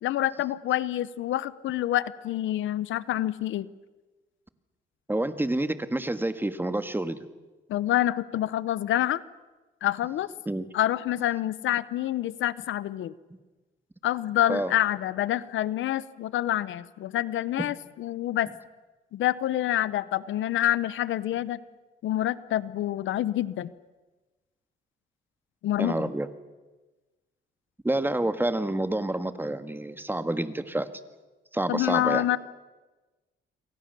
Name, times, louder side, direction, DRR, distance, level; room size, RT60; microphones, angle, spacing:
voice 1, 0.0-3.7 7.7-9.2 9.8-10.3 10.7-13.1 14.0-18.5 19.1-21.6 22.0-23.7 25.6-26.1 31.7-32.4, left 13 dB, 75° left, 17 dB, 0.9 m, -27 dB
voice 2, 5.1-7.2 10.5-10.6 14.5-14.7 25.8-26.3 27.8-30.9 31.5-32.2, right 1 dB, 10° right, 10 dB, 1.7 m, -28 dB
28.5 x 23.5 x 6.9 m, 1.2 s
cardioid pair, 90°, 20 cm